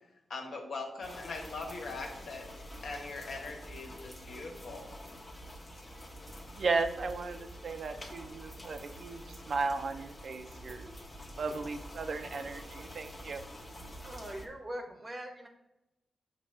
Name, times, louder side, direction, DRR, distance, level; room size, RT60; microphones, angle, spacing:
voice 1, 0.3-2.5 2.8-4.8, left 3 dB, 75° left, 1 dB, 1.4 m, -41 dB
sound 1, 1.0-14.5, equal, 25° left, 0.9 m, -47 dB
voice 2, 6.6-10.9 11.4-13.4, right 4 dB, 60° right, 7 dB, 0.6 m, -35 dB
voice 3, 14.0-15.5, right 1 dB, 20° right, 3 dB, 1.0 m, -42 dB
6.9 x 3.1 x 5.4 m, 0.91 s
wide cardioid pair, 120°, 0 cm